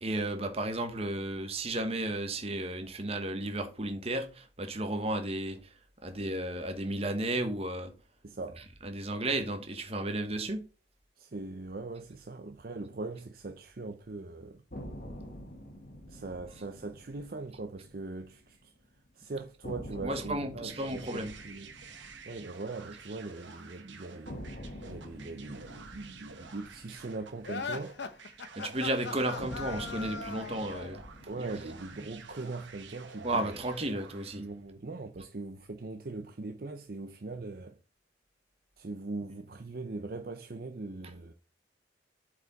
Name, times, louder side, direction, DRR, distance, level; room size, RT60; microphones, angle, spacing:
voice 1, 0.0-5.6 6.0-7.9 8.8-10.6 20.0-21.3 28.6-31.0 31.4-31.6 33.2-34.4, right 1 dB, 30° right, 1.2 m, -33 dB
voice 2, 8.2-8.6 11.2-14.6 16.1-18.7 19.2-21.7 22.3-24.4 24.9-28.0 31.3-33.4 34.4-37.8 38.8-41.3, right 3 dB, 50° right, 0.6 m, -41 dB
sound 1, 14.7-18.8 19.1-19.2 19.6-23.7 24.3-28.6 29.4-33.7, equal, 50° left, 1.7 m, -47 dB
sound 2, 20.7-34.5, right 5 dB, 80° right, 1.4 m, -50 dB
sound 3, 27.4-31.0, left 4 dB, 65° left, 0.8 m, -39 dB
7.9 x 4.9 x 4.0 m
head